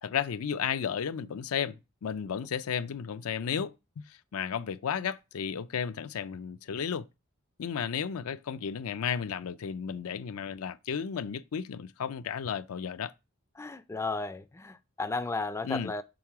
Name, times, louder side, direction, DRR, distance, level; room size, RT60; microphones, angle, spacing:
voice 1, 0.0-7.1 7.6-13.1 15.6-16.0, left 7 dB, 85° left, 0.4 m, -33 dB
voice 2, 13.6-16.0, left 3 dB, 15° left, 0.3 m, -34 dB
6.3 x 3.6 x 4.6 m
head